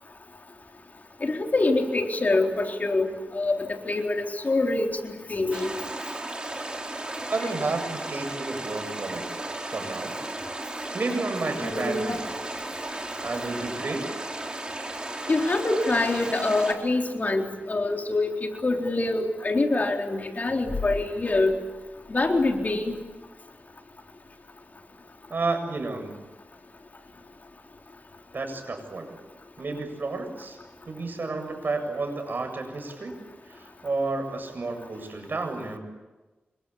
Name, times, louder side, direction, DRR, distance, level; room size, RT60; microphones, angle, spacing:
voice 1, 1.2-5.7 11.6-12.2 15.3-18.3 18.6-21.6 22.1-22.9, left 2 dB, 45° left, 3 dB, 3.9 m, -25 dB
sound 1, 5.5-16.7, right 2 dB, 25° right, 4.8 m, -35 dB
voice 2, 7.3-9.2 9.7-10.5 10.9-12.2 13.2-14.2 25.3-26.2 28.3-29.2 29.6-30.6 30.8-33.2 33.5-35.8, right 3 dB, 55° right, 5 dB, 7.7 m, -31 dB
28.0 x 24.5 x 8.7 m, 1.2 s
wide cardioid pair, 75°, 4 cm